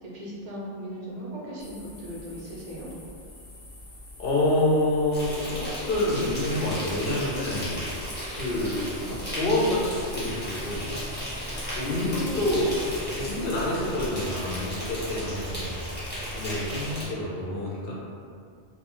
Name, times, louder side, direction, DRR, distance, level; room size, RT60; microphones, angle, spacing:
voice 1, 0.0-2.9, equal, 50° right, -6 dB, 0.5 m, -38 dB
sound 1, 1.6-13.8, left 1 dB, 80° left, 1.0 m, -47 dB
voice 2, 4.2-5.6 5.8-7.9 8.3-11.0 11.7-15.8 16.3-17.9, left 1 dB, 60° left, -5 dB, 0.7 m, -27 dB
Insect, 5.1-17.0, equal, 10° left, 0.8 m, -34 dB
2.3 x 2.2 x 3.0 m, 2.3 s
omnidirectional pair, 1.2 m